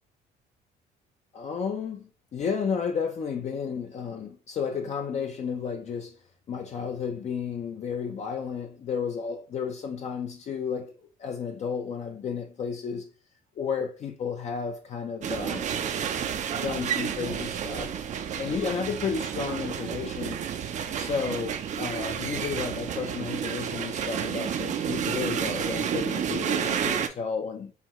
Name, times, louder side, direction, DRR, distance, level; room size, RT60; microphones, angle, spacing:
voice 1, 1.3-6.2 6.5-10.9 11.2-13.1 13.6-15.7 16.5-18.0 18.4-20.4 20.9-27.7, left 6 dB, 40° left, 0.5 m, -32 dB
sound 1, 15.2-27.1, right 8 dB, 45° right, 0.5 m, -30 dB
5.7 x 2.2 x 2.9 m
cardioid pair, 110°, 17 cm